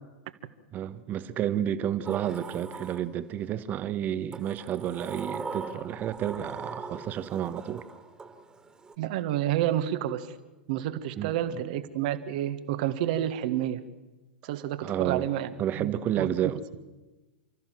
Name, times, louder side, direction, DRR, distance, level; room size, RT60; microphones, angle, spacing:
voice 1, 0.7-7.8 11.2-11.6 14.8-15.3 15.6-16.6, right 10 dB, 35° right, 1.4 m, -31 dB
Sliding door, 2.0-3.5 4.3-8.9, right 4 dB, 15° right, 2.3 m, -41 dB
voice 2, 9.0-10.3 10.7-13.8 14.4-15.5 15.8-16.3, right 12 dB, 55° right, 1.7 m, -29 dB
29.5 x 14.0 x 7.5 m
figure-of-eight pair, 95°, 5 cm